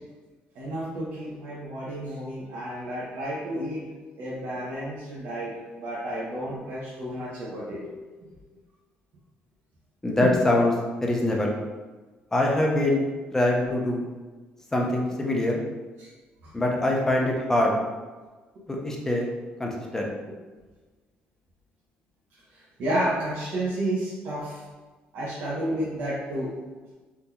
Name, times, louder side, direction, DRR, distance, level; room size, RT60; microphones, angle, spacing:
voice 1, 0.5-3.9 4.2-7.9 10.2-10.3 16.0-16.1 16.4-16.5 22.5-24.6 25.1-26.5, right 1 dB, 75° right, -8 dB, 0.8 m, -31 dB
voice 2, 10.0-10.7 11.0-11.6 12.3-13.0 13.3-14.0 14.7-15.6 16.5-17.7 18.7-19.3 19.6-20.1, left 1 dB, 10° left, -1 dB, 0.6 m, -23 dB
3.6 x 2.8 x 2.3 m, 1.3 s
cardioid pair, 115°, 4 cm